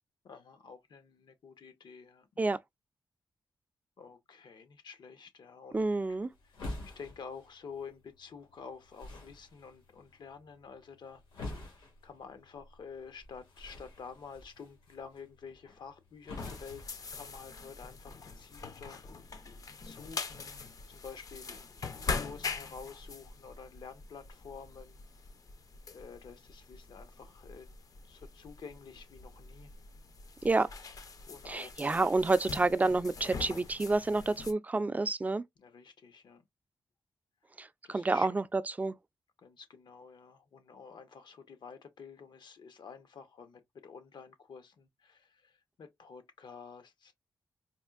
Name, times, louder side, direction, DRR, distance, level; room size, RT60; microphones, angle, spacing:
voice 1, 0.2-2.5 4.0-6.0 6.9-11.7 12.0-19.3 19.8-25.0 25.9-27.7 28.0-29.8 31.3-32.0 35.6-36.4 37.8-38.4 39.4-47.1, left 6 dB, 70° left, 0.8 m, -50 dB
sound 1, 5.7-17.7, left 2 dB, 85° left, 2.0 m, -48 dB
voice 2, 5.7-6.3 30.4-30.7 31.5-35.4 37.6-39.0, right 3 dB, 20° right, 0.3 m, -29 dB
sound 2, 16.4-34.5, left 4 dB, 50° left, 0.5 m, -43 dB
4.3 x 2.4 x 2.3 m
wide cardioid pair, 115°, 8 cm